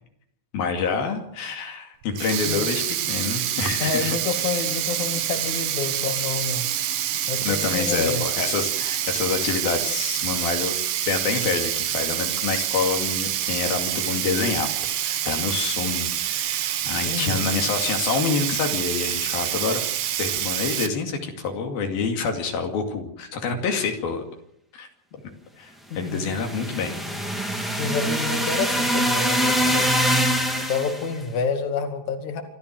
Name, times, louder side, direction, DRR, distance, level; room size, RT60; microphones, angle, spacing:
voice 1, 0.5-4.2 7.4-10.8 11.1-19.8 20.2-24.2 24.8-24.9 25.6-25.7 26.0-26.9, left 5 dB, 85° left, 3 dB, 4.3 m, -27 dB
Sink (filling or washing), 2.0-20.9, right 11 dB, 70° right, 2.8 m, -27 dB
voice 2, 3.8-6.7 7.3-8.2 17.0-17.5 25.9-26.3 27.8-29.9 30.7-32.4, left 5 dB, 55° left, 5 dB, 3.5 m, -28 dB
sound 1, 26.1-31.1, equal, ahead, 2.4 m, -24 dB
27.0 x 13.5 x 7.7 m, 0.74 s
omnidirectional pair, 4.1 m